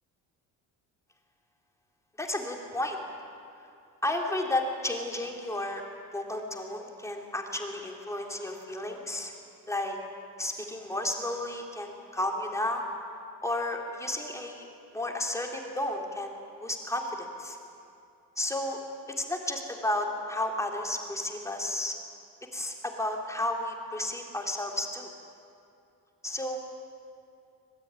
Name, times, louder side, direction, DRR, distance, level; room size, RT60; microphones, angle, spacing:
voice 1, 2.2-3.0 4.0-5.8 6.1-9.3 9.7-10.0 10.4-12.8 13.4-14.7 14.9-17.6 18.4-18.8 19.2-21.9 22.5-25.1 26.2-26.6, left 1 dB, 10° left, 1 dB, 3.6 m, -32 dB
26.0 x 21.5 x 9.9 m, 2.5 s
cardioid pair, 140°, 37 cm